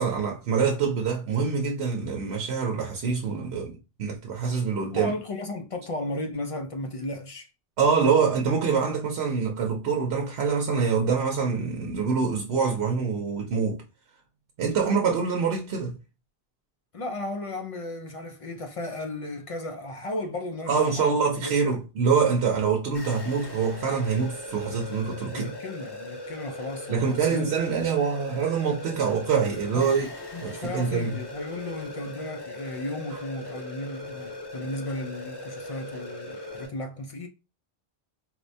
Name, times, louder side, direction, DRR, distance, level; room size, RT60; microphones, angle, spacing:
voice 1, 0.0-5.1 7.8-13.8 14.6-16.0 20.7-25.5 26.9-30.1 30.4-31.2, right 5 dB, 80° right, 0.9 m, -25 dB
voice 2, 4.9-7.5 8.2-8.3 8.8-9.0 16.9-21.8 25.3-27.5 29.7-30.0 30.3-37.3, left 2 dB, 55° left, 0.3 m, -35 dB
sound 1, 22.9-36.7, left 1 dB, 25° left, 0.7 m, -39 dB
4.3 x 2.1 x 2.6 m
omnidirectional pair, 1.0 m